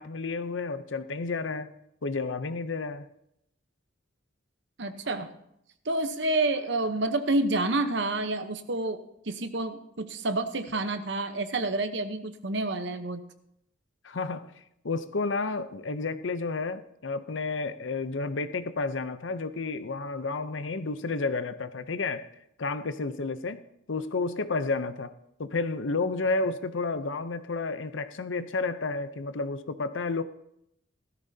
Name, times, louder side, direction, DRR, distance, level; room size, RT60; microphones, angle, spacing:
voice 1, 0.0-1.7 2.0-3.1 14.0-22.3 22.6-23.6 23.9-25.1 25.4-30.2, left 3 dB, 85° left, 0.7 m, -31 dB
voice 2, 4.8-5.3 5.8-13.2, right 2 dB, 65° right, 0.9 m, -29 dB
16.0 x 13.5 x 2.8 m
head